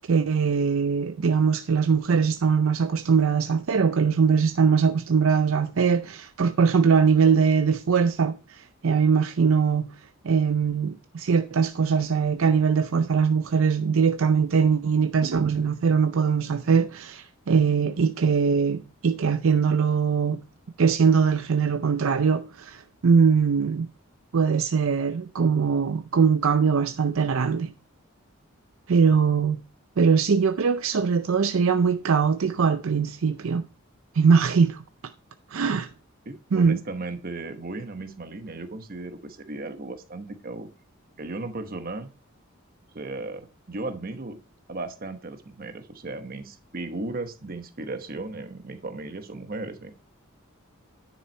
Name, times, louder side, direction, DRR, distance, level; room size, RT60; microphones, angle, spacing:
voice 1, 0.1-9.9 10.2-20.4 20.8-23.9 24.3-27.7 28.9-29.6 30.0-33.7 34.1-34.8 35.5-35.9 36.5-36.8, right 6 dB, 65° right, 0.5 m, -21 dB
voice 2, 36.3-40.7 41.2-42.1 42.9-44.4 44.7-49.9, right 2 dB, 40° right, 1.0 m, -36 dB
10.0 x 6.1 x 4.3 m
head